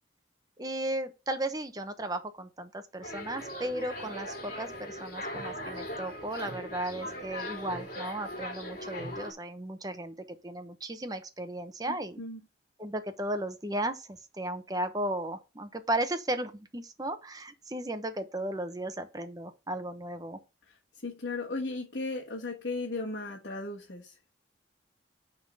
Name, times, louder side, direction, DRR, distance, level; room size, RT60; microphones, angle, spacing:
voice 1, 0.6-10.1 10.4-12.2 12.8-20.4, right 1 dB, 20° right, 0.9 m, -35 dB
sound 1, 3.0-9.3, equal, 45° left, 2.8 m, -39 dB
voice 2, 11.9-12.4 20.7-24.4, left 3 dB, 75° left, 1.4 m, -36 dB
9.4 x 3.7 x 5.4 m
head